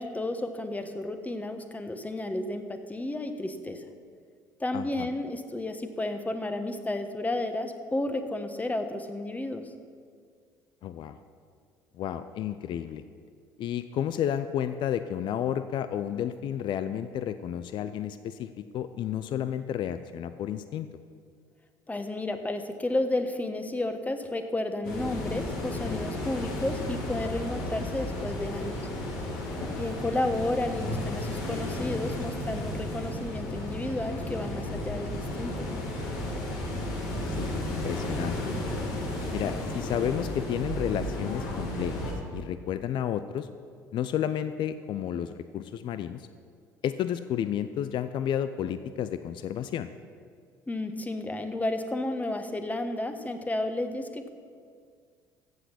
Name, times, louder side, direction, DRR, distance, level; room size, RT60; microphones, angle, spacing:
voice 1, 0.0-3.9 4.6-9.6 21.9-28.8 29.5-35.7 50.7-54.3, left 2 dB, 15° left, 7 dB, 1.3 m, -32 dB
voice 2, 4.7-5.1 10.8-11.2 12.0-13.0 13.6-20.9 29.6-30.0 37.3-38.5 39.3-43.5 43.9-46.3 46.8-49.9, left 10 dB, 50° left, 12 dB, 0.5 m, -32 dB
sound 1, 24.8-42.1, left 1 dB, 70° left, 2.8 m, -33 dB
15.0 x 7.9 x 5.9 m, 2.1 s
hypercardioid pair, 60°, 10 cm